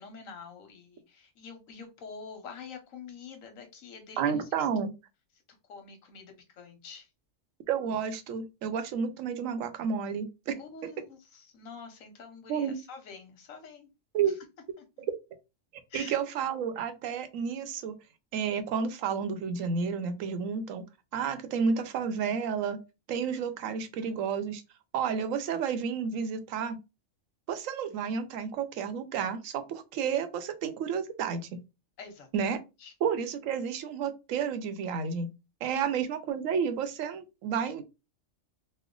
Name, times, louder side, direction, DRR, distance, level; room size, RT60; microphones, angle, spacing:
voice 1, 0.0-4.7 5.7-7.1 10.6-13.9 14.3-14.4 15.9-16.2 32.0-32.3 32.8-32.9 35.7-35.9, left 5 dB, 80° left, 1.2 m, -46 dB
voice 2, 4.2-4.9 7.7-10.6 12.5-12.8 14.1-14.3 15.9-18.0 18.3-20.8 21.1-22.8 23.1-24.6 24.9-26.8 27.5-31.6 32.3-32.6 33.0-35.3 35.6-37.8, right 6 dB, 80° right, 1.0 m, -31 dB
3.2 x 2.1 x 3.7 m
omnidirectional pair, 1.4 m